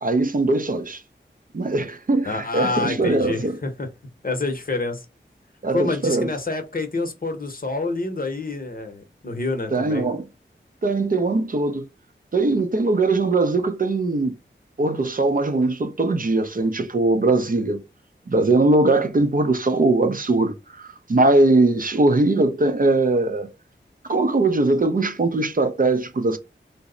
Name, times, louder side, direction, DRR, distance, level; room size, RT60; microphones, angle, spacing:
voice 1, 0.0-1.0 1.5-3.6 5.6-6.3 9.7-10.3 10.8-11.9 12.3-14.4 14.8-17.8 18.3-23.5 24.1-26.4, right 2 dB, 45° right, 0.5 m, -20 dB
voice 2, 2.2-3.9 4.2-5.0 5.7-10.1, left 3 dB, 45° left, 0.7 m, -27 dB
3.0 x 2.0 x 3.7 m
wide cardioid pair, 70°, 20 cm